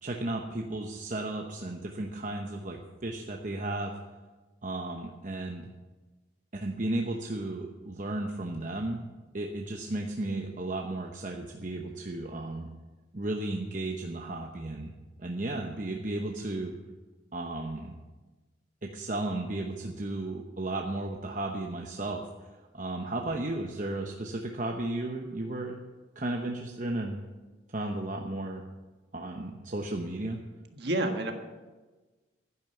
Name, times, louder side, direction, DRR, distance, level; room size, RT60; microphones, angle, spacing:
voice 1, 0.0-4.0 4.6-5.7 6.5-9.1 9.3-12.7 13.1-14.9 15.2-16.8 17.3-17.9 18.8-22.2 22.5-25.8 26.1-27.2 27.7-28.6 29.1-30.4, right 2 dB, 40° right, 1 dB, 0.9 m, -34 dB
voice 2, 30.7-31.3, right 1 dB, 55° right, 4 dB, 1.6 m, -29 dB
11.0 x 10.5 x 7.1 m, 1.2 s
head